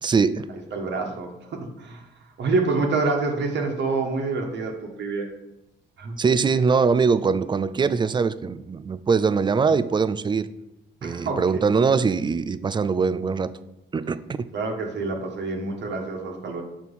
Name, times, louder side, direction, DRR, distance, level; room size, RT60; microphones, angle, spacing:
voice 1, 0.0-0.5 6.2-10.5 11.0-13.5 13.9-14.5, right 5 dB, 25° right, 14 dB, 0.4 m, -22 dB
voice 2, 0.7-2.0 2.4-5.3 6.0-6.1 11.0-11.7 14.5-16.6, right 3 dB, 65° right, 2 dB, 1.4 m, -27 dB
6.3 x 4.4 x 5.5 m, 0.90 s
cardioid pair, 90°, 20 cm